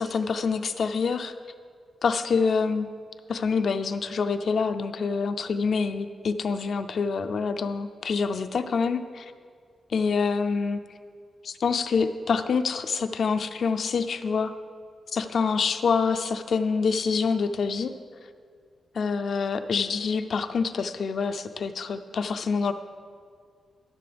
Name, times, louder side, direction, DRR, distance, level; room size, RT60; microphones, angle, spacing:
voice 1, 0.0-1.3 2.0-2.9 3.3-9.3 9.9-10.8 11.4-14.5 15.1-17.9 18.9-22.7, left 5 dB, 65° left, 9 dB, 0.4 m, -26 dB
14.0 x 6.9 x 3.4 m, 2.1 s
cardioid pair, 105°, 0 cm